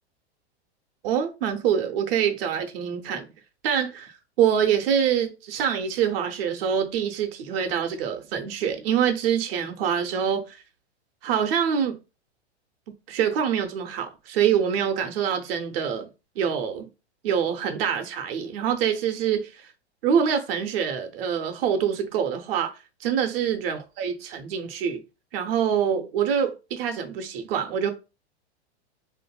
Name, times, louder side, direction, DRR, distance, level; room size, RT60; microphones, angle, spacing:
voice 1, 1.0-3.3 3.6-10.6 11.2-12.0 13.1-16.1 16.4-16.9 17.2-19.7 20.0-25.0 25.3-27.9, right 8 dB, 60° right, 0.6 m, -25 dB
2.6 x 2.5 x 2.2 m
hypercardioid pair, 110°, 33 cm